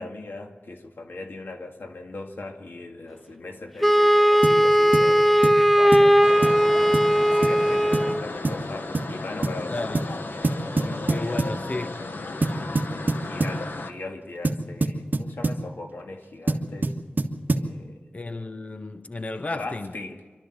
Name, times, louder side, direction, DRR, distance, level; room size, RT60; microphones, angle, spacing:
voice 1, 0.0-6.8 7.2-11.9 12.9-17.0 17.6-18.0 19.5-20.2, left 2 dB, 90° left, 2.2 m, -39 dB
Wind instrument woodwind instrument, 3.8-8.2, equal, ahead, 0.6 m, -18 dB
sound 1, 4.4-4.6 4.9-5.1 5.4-5.6 5.9-6.1 6.4-6.6 6.9-7.1 7.4-7.6 7.9-8.1 8.4-8.7 8.9-9.1 9.4-9.6 10.0-10.2 10.4-11.6 12.4-13.6 14.4-15.6 16.5-17.7, right 2 dB, 60° right, 1.7 m, -25 dB
sound 2, 6.2-13.9, left 2 dB, 75° left, 1.5 m, -35 dB
voice 2, 9.7-10.1 10.8-12.0 18.1-19.9, left 2 dB, 40° left, 0.8 m, -33 dB
26.0 x 13.0 x 7.9 m
wide cardioid pair, 75°, 4 cm